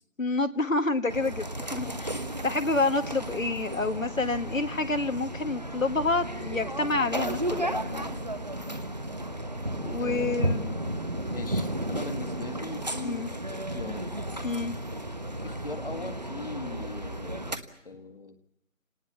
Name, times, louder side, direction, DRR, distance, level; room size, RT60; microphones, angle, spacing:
voice 1, 0.2-8.2 9.8-10.8 13.0-13.3 14.4-14.7, left 3 dB, 75° left, 8 dB, 1.6 m, -28 dB
sound 1, 1.1-17.6, right 1 dB, 30° right, 1.2 m, -33 dB
voice 2, 10.0-13.2 13.5-14.1 15.4-17.4 17.8-18.4, left 3 dB, 45° left, 8 dB, 1.8 m, -40 dB
27.5 x 19.0 x 7.2 m, 0.86 s
figure-of-eight pair, 175°, 40 cm